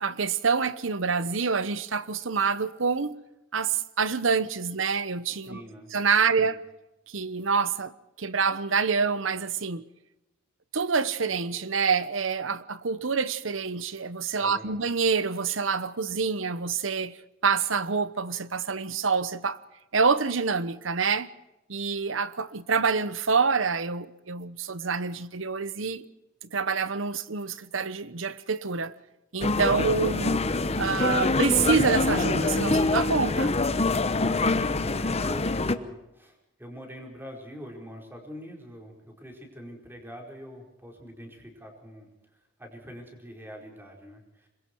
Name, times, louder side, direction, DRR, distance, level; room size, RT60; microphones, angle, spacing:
voice 1, 0.0-3.2 3.5-5.6 5.9-6.6 7.1-7.9 8.2-9.8 10.7-17.2 17.4-19.6 19.9-21.3 21.7-26.0 26.5-28.9 29.3-30.4 30.8-33.5, right 5 dB, 75° right, 1.0 m, -27 dB
voice 2, 5.4-5.9 6.4-6.5 14.4-14.8 34.2-42.1 42.6-44.5, equal, 10° right, 4.8 m, -44 dB
sound 1, 29.4-35.8, left 3 dB, 30° left, 1.0 m, -25 dB
26.0 x 22.5 x 4.7 m
head